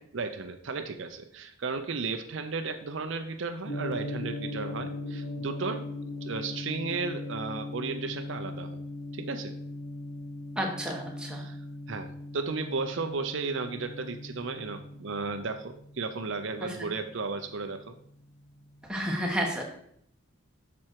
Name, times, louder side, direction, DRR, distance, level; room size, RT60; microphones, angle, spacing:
voice 1, 0.1-5.9 6.2-8.8 9.1-9.5 11.3-11.6 11.9-17.9, right 4 dB, 60° right, 7 dB, 0.6 m, -34 dB
Gong, 3.6-17.8, left 2 dB, 50° left, 1.3 m, -39 dB
voice 2, 10.6-11.4 18.9-19.6, equal, 5° right, 0 dB, 1.3 m, -30 dB
7.5 x 6.2 x 4.6 m, 0.69 s
head